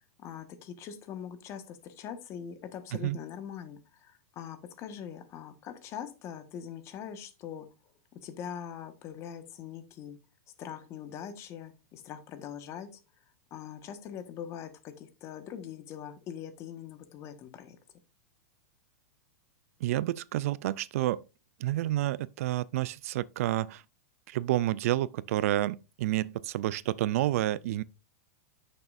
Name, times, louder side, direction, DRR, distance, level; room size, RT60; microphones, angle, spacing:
voice 1, 0.2-7.7 8.2-10.2 10.6-12.9 13.5-17.8, left 8 dB, 35° left, 1.4 m, -42 dB
voice 2, 19.8-21.2 21.6-23.8 24.3-27.8, right 14 dB, 65° right, 0.4 m, -29 dB
10.5 x 6.7 x 2.6 m
supercardioid pair, 140°, 9 cm